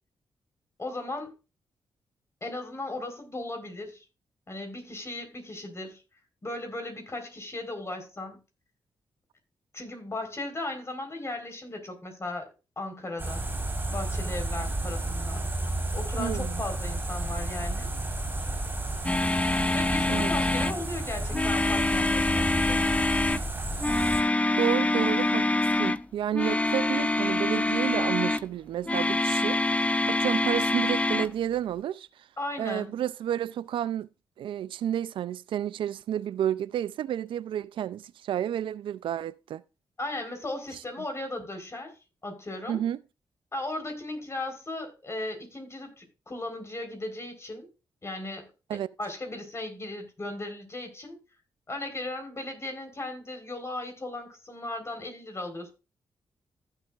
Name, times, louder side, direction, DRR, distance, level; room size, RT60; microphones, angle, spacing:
voice 1, 0.8-1.3 2.4-4.0 4.5-6.0 6.4-8.4 9.7-12.5 12.8-13.4 13.9-15.4 15.9-17.9 19.7-22.8 32.4-32.9 40.0-41.9 42.2-42.8 43.5-47.7 48.0-51.2 51.7-55.7, left 2 dB, 30° left, 4.1 m, -36 dB
sound 1, 13.2-24.2, right 1 dB, 20° right, 3.9 m, -32 dB
voice 2, 16.2-16.6 20.1-20.3 24.6-25.5 25.8-32.3 32.6-34.1 34.4-39.6 42.7-43.0 48.7-48.9, right 10 dB, 80° right, 0.4 m, -31 dB
sound 2, 19.0-20.8 21.3-23.4 23.8-26.0 26.3-28.4 28.8-31.3, left 2 dB, 15° left, 0.6 m, -25 dB
15.0 x 7.5 x 2.4 m
cardioid pair, 70°, 9 cm